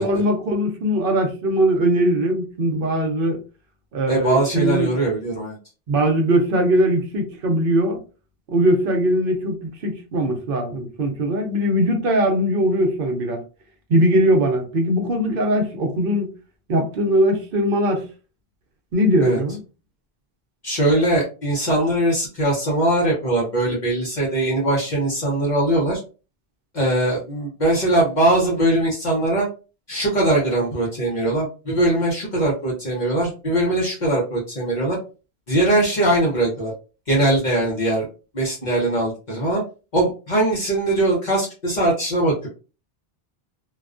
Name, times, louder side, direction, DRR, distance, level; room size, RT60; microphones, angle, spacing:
voice 1, 0.0-3.4 3.9-4.9 5.9-8.0 8.5-13.4 13.9-16.3 16.7-18.1 18.9-19.6, right 1 dB, 65° right, 0.8 m, -20 dB
voice 2, 4.1-5.6 19.2-19.4 20.6-26.0 26.7-29.5 29.9-35.0 35.5-36.7 37.1-38.1 38.3-39.6 39.9-42.5, right 1 dB, 50° left, 0.8 m, -21 dB
2.3 x 2.2 x 2.4 m
omnidirectional pair, 1.0 m